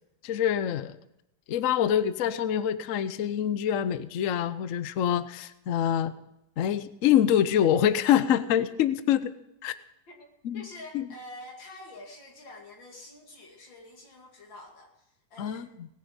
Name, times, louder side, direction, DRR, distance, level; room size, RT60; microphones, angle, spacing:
voice 1, 0.2-1.0 1.5-6.1 6.6-9.3 9.6-9.8 10.4-10.6 10.9-11.0 15.4-15.9, left 10 dB, 60° left, 14 dB, 0.9 m, -25 dB
voice 2, 10.5-15.0 15.3-15.7, left 1 dB, 85° left, 1 dB, 3.2 m, -46 dB
18.5 x 10.0 x 5.1 m, 0.84 s
omnidirectional pair, 2.0 m